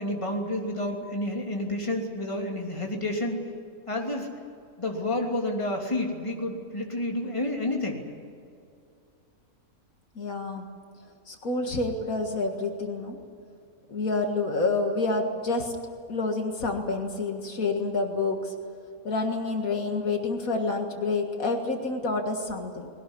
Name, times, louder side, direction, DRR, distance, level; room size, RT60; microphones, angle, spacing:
voice 1, 0.0-3.4 3.9-4.3 4.8-8.0, left 1 dB, 20° left, 0 dB, 3.1 m, -30 dB
voice 2, 10.2-10.6 11.3-13.2 13.9-15.7 16.1-18.5 19.0-22.9, left 3 dB, 70° left, 3 dB, 2.2 m, -28 dB
20.5 x 18.5 x 10.0 m, 2.4 s
omnidirectional pair, 1.5 m